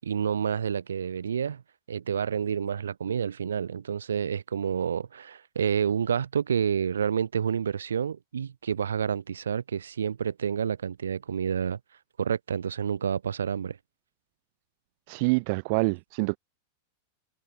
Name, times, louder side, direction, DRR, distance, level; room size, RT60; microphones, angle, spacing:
voice 1, 0.0-1.6 1.9-11.8 12.2-13.8, right 7 dB, 75° right, 7.3 m, -29 dB
voice 2, 15.1-16.4, right 29 dB, 50° right, 0.9 m, -26 dB
figure-of-eight pair, 90°, 0 cm